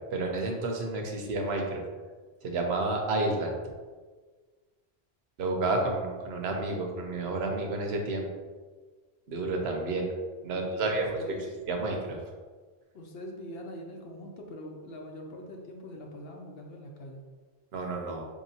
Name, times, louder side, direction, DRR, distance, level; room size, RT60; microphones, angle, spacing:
voice 1, 0.1-1.8 2.4-3.5 5.4-8.3 9.3-10.1 10.4-11.4 11.7-12.2 17.7-18.3, right 2 dB, 80° right, 2 dB, 0.9 m, -30 dB
voice 2, 10.5-11.6 12.9-17.2, left 1 dB, 70° left, 1 dB, 0.9 m, -43 dB
4.7 x 2.8 x 2.7 m, 1.4 s
omnidirectional pair, 1.1 m